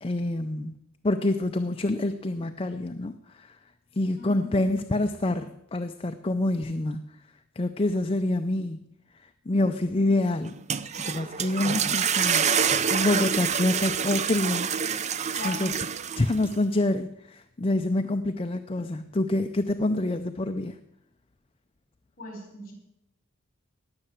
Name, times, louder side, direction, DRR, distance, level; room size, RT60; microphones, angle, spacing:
voice 1, 0.0-0.8 1.0-3.6 4.0-7.0 7.6-8.8 9.5-10.5 11.0-14.7 15.4-15.7 16.2-20.8, left 2 dB, 25° left, 8 dB, 0.5 m, -27 dB
voice 2, 4.2-4.8 15.3-15.8 22.2-22.7, left 3 dB, 40° left, 3 dB, 4.7 m, -40 dB
sound 1, 10.5-16.5, right 7 dB, 35° right, 0.5 m, -27 dB
18.5 x 6.7 x 7.4 m, 0.83 s
head